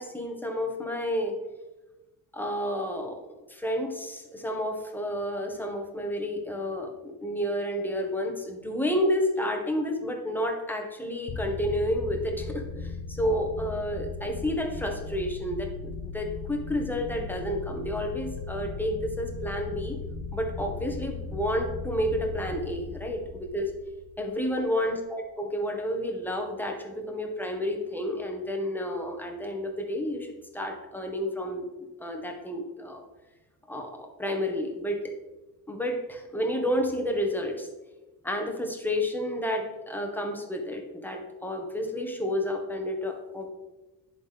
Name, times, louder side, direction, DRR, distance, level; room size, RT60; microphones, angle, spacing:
voice 1, 0.0-1.3 2.3-3.2 3.5-20.0 20.3-23.7 24.2-31.7 32.0-33.0 33.7-35.1 35.7-37.7 38.2-43.5, equal, 5° left, 2 dB, 1.5 m, -30 dB
sound 1, 11.3-24.6, left 4 dB, 50° left, 0.9 m, -37 dB
10.5 x 4.0 x 3.5 m, 1.1 s
hypercardioid pair, 60°, 47 cm